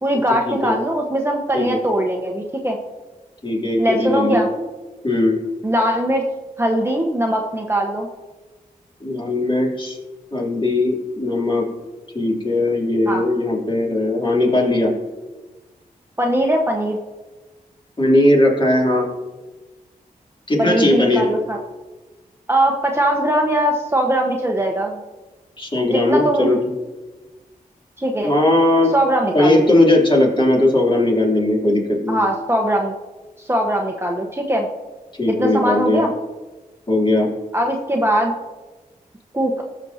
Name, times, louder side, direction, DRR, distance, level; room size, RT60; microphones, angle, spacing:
voice 1, 0.0-2.8 3.8-4.5 5.6-6.2 6.6-8.1 13.1-13.2 16.2-17.0 20.6-21.6 22.5-25.0 25.9-26.5 28.0-28.3 28.9-29.6 32.1-32.9 33.4-34.7 35.4-36.1 37.5-38.3 39.3-39.6, right 1 dB, 15° right, 1 dB, 1.0 m, -20 dB
voice 2, 3.4-4.4 5.0-5.4 9.0-10.0 10.3-11.7 12.1-14.9 18.0-19.1 20.5-21.3 25.6-26.6 28.2-28.9 29.3-32.2 35.2-36.1 36.9-37.3, left 1 dB, 35° left, -3 dB, 3.0 m, -18 dB
14.0 x 6.2 x 2.8 m, 1.2 s
cardioid pair, 45°, 15 cm